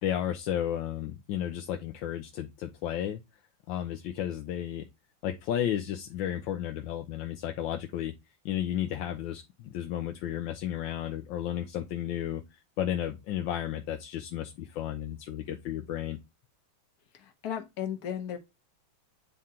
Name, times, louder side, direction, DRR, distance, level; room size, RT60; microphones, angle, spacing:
voice 1, 0.0-3.2 3.7-4.8 5.2-8.1 8.4-16.2, left 11 dB, 80° left, 1.3 m, -33 dB
voice 2, 17.1-18.4, left 9 dB, 55° left, 1.4 m, -35 dB
9.7 x 3.7 x 2.8 m
omnidirectional pair, 2.1 m